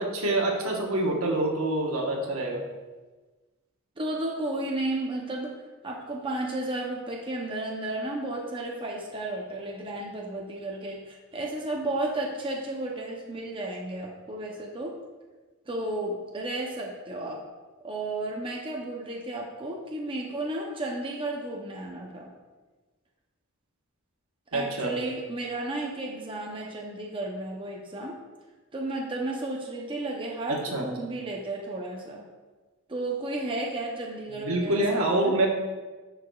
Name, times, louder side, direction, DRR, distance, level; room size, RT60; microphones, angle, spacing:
voice 1, 0.0-2.6 24.5-24.9 30.5-30.9 34.3-35.5, right 2 dB, 75° right, 0 dB, 1.2 m, -26 dB
voice 2, 4.0-5.5 5.8-15.0 15.7-17.4 17.8-22.3 24.5-28.2 28.7-32.2 32.9-35.4, right 2 dB, 25° right, -1 dB, 0.6 m, -33 dB
10.0 x 4.8 x 2.3 m, 1.3 s
head